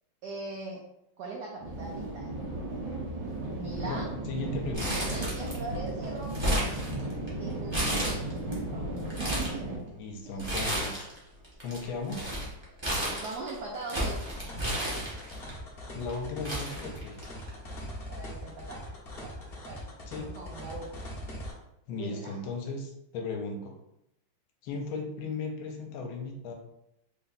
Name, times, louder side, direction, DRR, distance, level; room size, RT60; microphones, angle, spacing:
voice 1, 0.2-0.8 1.2-2.3 3.6-4.2 4.9-6.8 7.4-8.2 8.6-8.8 9.2-9.7 10.2-10.5 13.2-14.3 18.1-18.9 19.2-19.3 19.7-19.9 20.1-21.0 22.0-22.4, right 3 dB, 80° right, -1 dB, 0.9 m, -40 dB
sound 1, 1.6-9.8, right 2 dB, 65° right, 1.5 m, -35 dB
voice 2, 3.8-4.9 9.9-11.1 11.6-12.4 15.9-17.2 20.1-20.3 21.9-23.8 24.6-26.5, left 3 dB, 80° left, 2 dB, 1.4 m, -36 dB
Crumpling crinkling, 4.7-5.7 6.0-7.3 7.7-8.5 9.0-9.6 10.4-11.2 11.4-15.5 16.1-16.2 16.4-17.5 17.8-17.9 18.9-19.1, right 1 dB, 30° right, 0.4 m, -32 dB
sound 2, 14.0-21.5, left 1 dB, 45° left, 0.7 m, -42 dB
3.8 x 2.2 x 3.9 m, 0.82 s
omnidirectional pair, 2.4 m